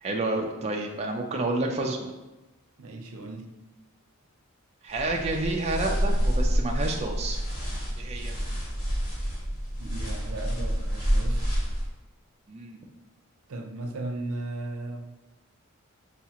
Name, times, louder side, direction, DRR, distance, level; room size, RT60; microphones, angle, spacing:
voice 1, 0.0-2.1 4.8-7.4 8.0-8.4 12.5-12.8, right 2 dB, 30° right, 0 dB, 0.4 m, -29 dB
voice 2, 2.8-3.5 9.8-11.5 13.5-15.0, right 2 dB, 75° right, 4 dB, 0.6 m, -36 dB
sound 1, 4.9-11.9, equal, 65° left, 1.5 m, -28 dB
6.4 x 2.4 x 2.8 m, 1.0 s
head